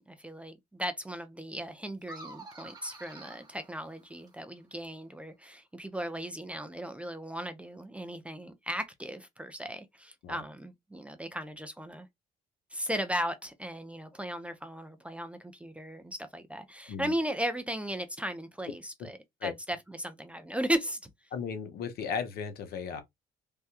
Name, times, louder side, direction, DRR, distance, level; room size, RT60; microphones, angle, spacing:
voice 1, 0.0-12.1 12.7-21.1, equal, 5° right, 0.5 m, -36 dB
sound 1, 2.0-4.5, right 2 dB, 25° right, 1.0 m, -49 dB
voice 2, 21.3-23.0, left 6 dB, 65° left, 0.9 m, -35 dB
3.4 x 2.2 x 2.7 m
cardioid pair, 110°, 17 cm